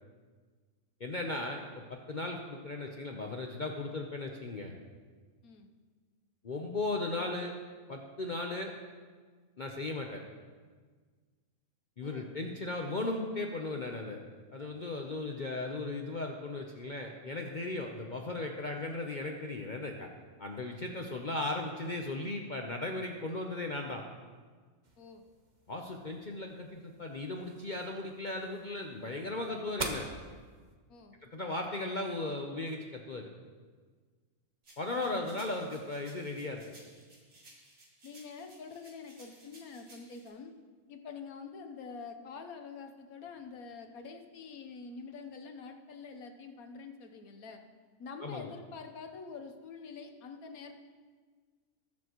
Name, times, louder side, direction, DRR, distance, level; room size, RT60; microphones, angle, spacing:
voice 1, 1.0-4.7 6.4-7.5 7.9-8.7 9.6-10.2 12.0-14.2 14.5-20.1 20.4-24.0 25.7-30.1 31.3-33.3 34.8-36.6 48.2-48.5, left 2 dB, 40° left, 2 dB, 0.7 m, -37 dB
sound 1, 24.8-30.8, right 3 dB, 35° right, 1.0 m, -46 dB
sound 2, 34.6-40.3, right 1 dB, 85° right, 2.7 m, -58 dB
voice 2, 35.1-35.4 38.0-40.5 40.9-47.6 48.0-50.7, left 5 dB, 80° left, 6 dB, 1.4 m, -46 dB
20.0 x 7.3 x 3.0 m, 1.5 s
omnidirectional pair, 1.5 m